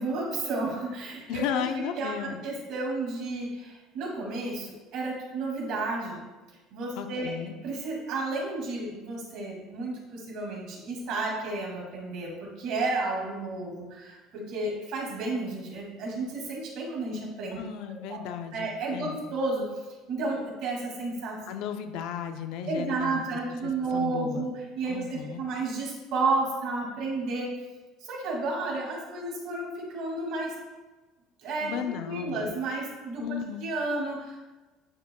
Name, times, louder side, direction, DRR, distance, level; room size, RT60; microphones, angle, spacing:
voice 1, 0.0-1.5 2.0-6.2 6.7-7.3 7.6-17.6 18.1-18.2 18.5-19.6 20.1-21.4 22.7-27.5 28.0-30.5 31.4-33.2 33.6-34.4, right 3 dB, 50° right, -2 dB, 2.3 m, -32 dB
voice 2, 1.3-2.4 7.0-7.6 17.6-19.2 21.5-23.2 23.6-24.5 24.9-25.4 31.6-32.5 33.2-33.6, left 8 dB, 60° left, 7 dB, 0.6 m, -34 dB
9.7 x 6.5 x 2.3 m, 1.2 s
cardioid pair, 170°, 0 cm